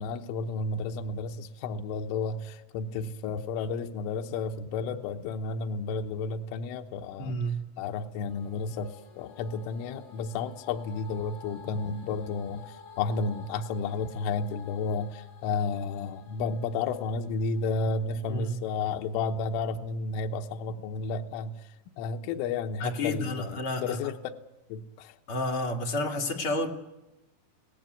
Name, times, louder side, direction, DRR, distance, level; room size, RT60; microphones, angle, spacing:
voice 1, 0.0-7.4 7.8-21.6 22.0-24.2 24.7-25.2, left 4 dB, 85° left, 4 dB, 3.5 m, -32 dB
voice 2, 7.2-7.6 18.3-18.7 22.8-24.0 25.3-26.7, left 1 dB, 45° left, 1 dB, 1.9 m, -30 dB
sound 1, 8.3-18.5, left 6 dB, 65° left, 6.9 m, -52 dB
25.0 x 18.0 x 9.2 m, 0.97 s
omnidirectional pair, 5.6 m